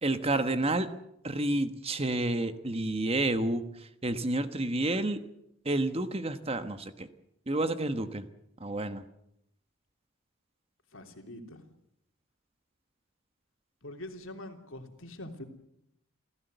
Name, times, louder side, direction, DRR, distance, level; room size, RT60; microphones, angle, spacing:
voice 1, 0.0-0.9 1.2-3.6 4.0-5.2 5.6-7.1 7.5-8.2 8.6-9.0, right 2 dB, 30° right, 10 dB, 1.2 m, -29 dB
voice 2, 10.9-11.7 13.8-15.4, left 1 dB, 65° left, 5 dB, 3.3 m, -44 dB
28.0 x 16.0 x 8.0 m, 0.78 s
head